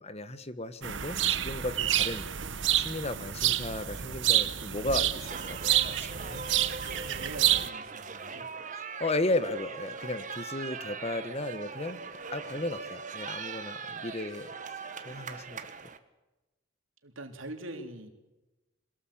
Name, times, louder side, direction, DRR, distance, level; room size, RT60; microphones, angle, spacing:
voice 1, 0.0-2.2 2.7-5.6 6.0-6.4 9.0-12.0 12.3-14.5 15.0-15.6, left 2 dB, 30° left, 12 dB, 1.3 m, -34 dB
sound 1, 0.8-7.7, right 12 dB, 65° right, 1.1 m, -28 dB
sound 2, 5.2-16.0, right 5 dB, 40° right, 1.6 m, -41 dB
voice 2, 6.9-8.5 12.4-12.6 17.0-18.1, right 1 dB, 80° right, 5 dB, 3.6 m, -43 dB
26.5 x 19.0 x 8.8 m, 1.1 s
head